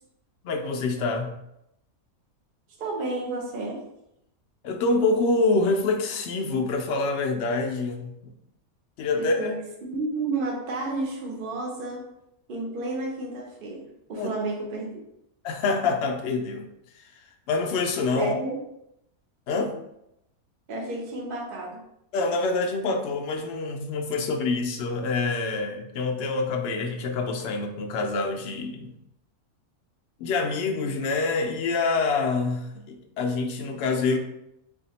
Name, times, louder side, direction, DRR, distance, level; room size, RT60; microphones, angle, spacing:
voice 1, 0.4-1.3 4.6-8.3 9.0-9.5 14.2-14.3 15.4-16.6 17.5-18.3 19.5-19.7 22.1-28.9 30.2-34.2, left 3 dB, 60° left, 3 dB, 0.8 m, -26 dB
voice 2, 2.8-3.8 9.2-12.0 12.5-13.8 14.1-15.0 18.2-18.6 20.7-21.8, right 2 dB, 45° right, 0 dB, 0.8 m, -31 dB
3.5 x 2.5 x 4.0 m, 0.80 s
omnidirectional pair, 1.5 m